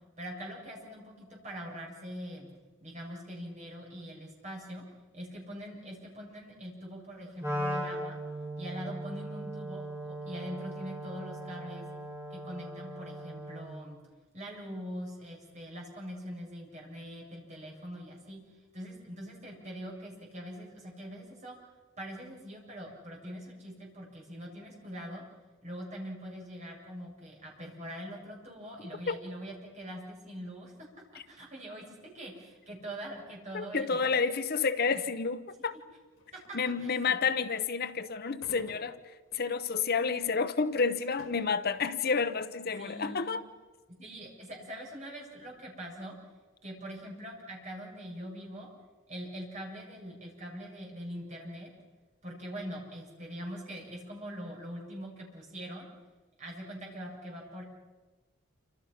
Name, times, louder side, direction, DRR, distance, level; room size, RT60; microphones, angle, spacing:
voice 1, 0.2-2.5 2.8-4.8 5.1-8.2 8.6-11.9 12.3-14.0 14.3-18.4 18.7-21.6 22.0-25.2 25.6-30.7 31.3-34.1 36.8-37.2 42.8-43.4 44.0-46.1 46.6-48.7 49.1-51.7 52.2-55.9 56.4-57.6, equal, 35° right, 7.7 m, -43 dB
Wind instrument woodwind instrument, 7.4-13.8, right 1 dB, 15° right, 4.5 m, -38 dB
voice 2, 33.5-35.8 36.5-39.0 39.3-43.4, left 5 dB, 45° left, 0.8 m, -30 dB
sound 1, 36.1-36.9 38.4-39.6 40.1-40.2 40.9-41.7, left 2 dB, 75° left, 4.7 m, -52 dB
28.5 x 26.5 x 5.9 m
head